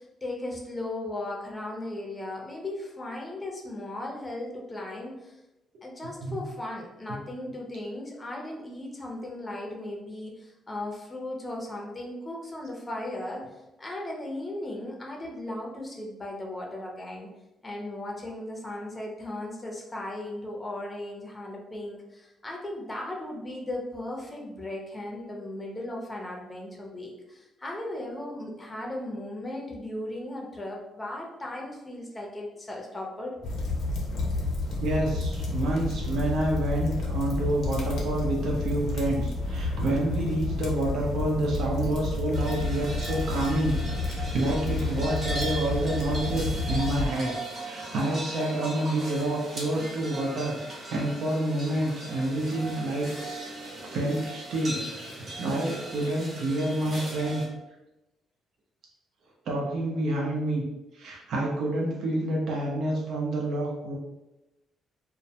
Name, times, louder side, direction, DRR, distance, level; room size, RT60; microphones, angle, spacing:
voice 1, 0.0-5.4 5.8-17.3 17.6-33.3, left 1 dB, 20° left, -1 dB, 0.5 m, -37 dB
sound 1, 33.4-47.1, left 2 dB, 65° left, 0.5 m, -30 dB
voice 2, 34.8-47.3 47.6-53.5 53.8-57.4 59.5-60.6 60.9-64.0, right 1 dB, 70° right, -2 dB, 0.6 m, -28 dB
sound 2, 42.3-57.4, right 2 dB, 45° right, 0.8 m, -38 dB
2.1 x 2.1 x 2.7 m, 0.96 s
cardioid pair, 90°, 0 cm